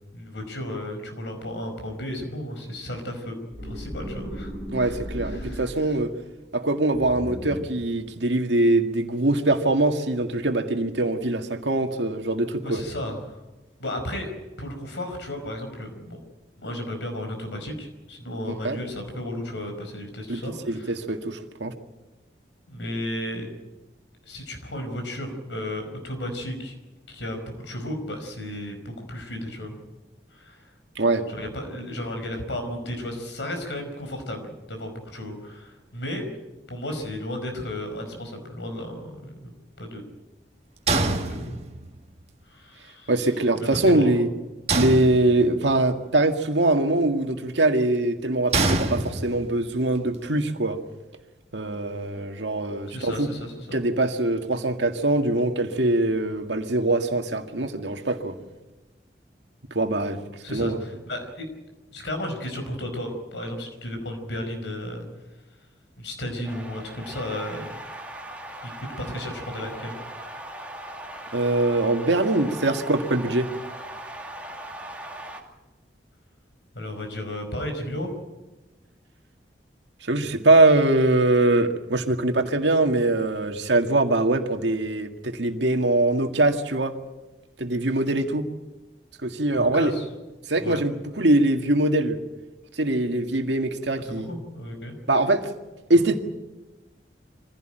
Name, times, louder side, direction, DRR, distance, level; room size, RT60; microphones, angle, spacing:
voice 1, 0.1-3.4 3.6-4.5 4.8-5.9 12.6-13.4 13.8-14.3 14.6-16.2 16.6-20.9 22.7-23.5 24.3-26.8 27.1-29.8 30.3-30.7 31.3-36.3 36.7-39.5 39.8-40.1 41.3-41.6 42.5-43.1 43.5-44.2 52.9-53.8 60.4-61.5 61.9-65.0 66.0-67.7 68.6-70.0 76.7-78.1 89.5-90.0 90.6-90.8 94.1-95.0 95.9-96.0, left 1 dB, 85° left, 5 dB, 5.1 m, -34 dB
sound 1, 3.5-6.0 6.9-7.9, equal, 60° left, 6.7 m, -36 dB
voice 2, 4.7-6.1 6.5-12.8 18.6-18.8 20.3-20.4 20.7-21.7 31.0-31.3 43.1-44.3 44.7-50.8 51.5-53.3 53.7-58.4 59.7-60.2 60.5-60.8 71.3-73.5 80.0-86.9 87.6-88.5 89.2-89.9 90.5-92.2 92.7-94.3 95.1-95.5 95.9-96.2, right 2 dB, 80° right, 5 dB, 2.0 m, -22 dB
sound 2, 40.9-42.0 44.7-45.7 48.5-49.6, right 3 dB, 35° right, 1.8 m, -25 dB
sound 3, 66.4-75.4, right 1 dB, 10° right, 2.3 m, -39 dB
24.0 x 16.0 x 9.1 m, 1.1 s
head